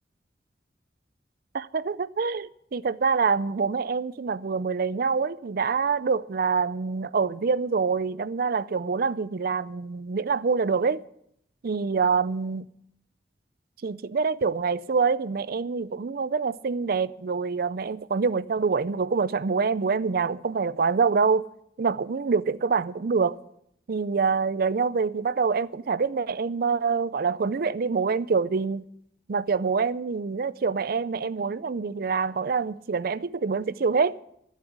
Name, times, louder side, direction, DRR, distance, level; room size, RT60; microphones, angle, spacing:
voice 1, 1.5-11.0 11.6-12.7 13.8-21.4 21.8-23.4 23.9-28.8 29.3-34.1, right 5 dB, 60° right, 0.5 m, -26 dB
11.5 x 7.5 x 10.0 m
head